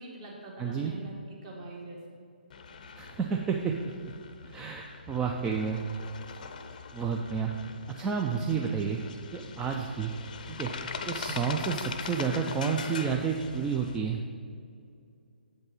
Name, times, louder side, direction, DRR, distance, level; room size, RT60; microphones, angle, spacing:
voice 1, 0.0-2.2, right 2 dB, 35° right, -2 dB, 1.9 m, -44 dB
voice 2, 0.6-0.9 3.0-3.7 4.4-5.8 6.9-7.5 7.9-9.0 9.3-10.1 10.5-10.7 11.1-14.2, right 6 dB, 10° right, 1 dB, 0.4 m, -30 dB
sound 1, 2.5-14.0, left 5 dB, 50° left, 0.6 m, -42 dB
7.8 x 5.3 x 5.5 m, 2.4 s
figure-of-eight pair, 135°, 6 cm